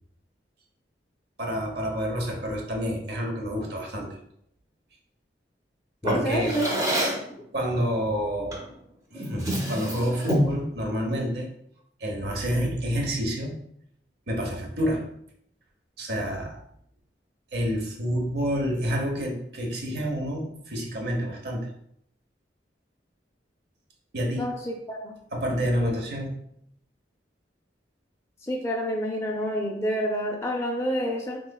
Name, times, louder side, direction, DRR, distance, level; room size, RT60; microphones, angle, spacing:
voice 1, 1.4-4.1 6.0-6.6 7.5-8.6 9.1-11.5 12.0-13.5 14.3-15.0 16.0-16.6 17.5-21.7 24.1-24.5 25.3-26.4, equal, 65° right, 1 dB, 0.8 m, -28 dB
voice 2, 6.0-6.7 24.4-25.1 25.8-25.9 28.5-31.4, equal, 15° left, 0 dB, 0.4 m, -28 dB
Drawer open or close, 6.0-7.3 8.5-8.7 9.1-10.6, equal, 20° right, 0.6 m, -27 dB
3.7 x 3.0 x 2.2 m, 0.71 s
head